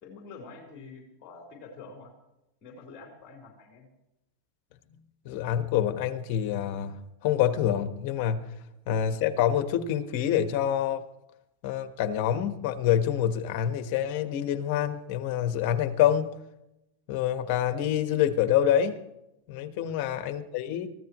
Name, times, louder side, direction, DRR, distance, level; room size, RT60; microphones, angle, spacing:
voice 1, 0.0-2.1 2.6-3.9 8.6-8.7 19.8-20.0, left 4 dB, 30° left, -1 dB, 3.9 m, -47 dB
voice 2, 5.2-7.0 7.2-8.5 8.9-11.0 11.6-16.3 17.1-19.0 19.5-20.9, left 10 dB, 50° left, 8 dB, 1.4 m, -26 dB
23.5 x 15.5 x 3.2 m, 0.90 s
supercardioid pair, 145°, 0 cm